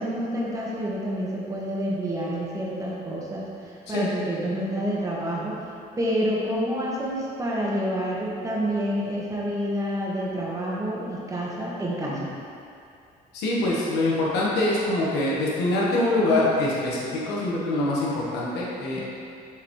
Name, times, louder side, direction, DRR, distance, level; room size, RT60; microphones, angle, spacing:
voice 1, 0.0-5.6 6.0-12.2 18.9-19.0, equal, 20° right, -5 dB, 1.4 m, -28 dB
voice 2, 13.3-19.0, left 2 dB, 85° left, -5 dB, 1.2 m, -24 dB
6.9 x 4.9 x 3.1 m, 2.5 s
cardioid pair, 110°, 17 cm